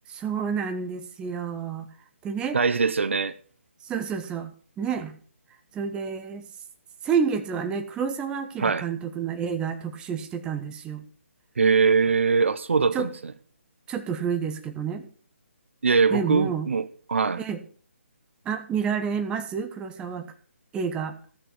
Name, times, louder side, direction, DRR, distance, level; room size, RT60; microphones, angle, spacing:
voice 1, 0.1-1.9 2.2-2.6 3.8-4.5 4.8-5.1 5.7-6.4 7.0-11.0 12.9-13.1 13.9-15.1 16.1-16.7 17.4-17.6 18.4-20.3 20.7-21.1, right 6 dB, 10° right, 1.0 m, -29 dB
voice 2, 2.5-3.3 8.6-8.9 11.6-13.3 15.8-17.4, right 5 dB, 65° right, 0.8 m, -22 dB
14.5 x 6.6 x 6.0 m
figure-of-eight pair, 145°, 7 cm